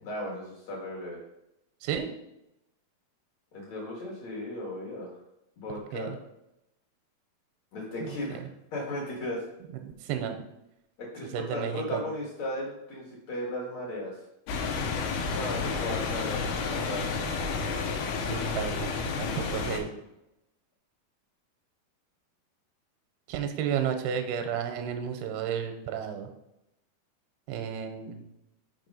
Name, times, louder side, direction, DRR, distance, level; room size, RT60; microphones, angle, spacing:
voice 1, 0.0-1.2 3.5-5.2 5.6-6.1 7.7-8.4 8.7-9.4 11.0-14.2 15.2-17.1, left 1 dB, 55° left, -4 dB, 2.2 m, -36 dB
voice 2, 9.8-10.4 11.3-12.0 18.3-18.9 19.2-19.9 23.3-26.3 27.5-28.2, right 8 dB, 85° right, 6 dB, 2.6 m, -32 dB
sound 1, 14.5-19.8, left 4 dB, 80° left, 2.7 m, -31 dB
6.1 x 4.7 x 5.3 m, 0.88 s
omnidirectional pair, 4.6 m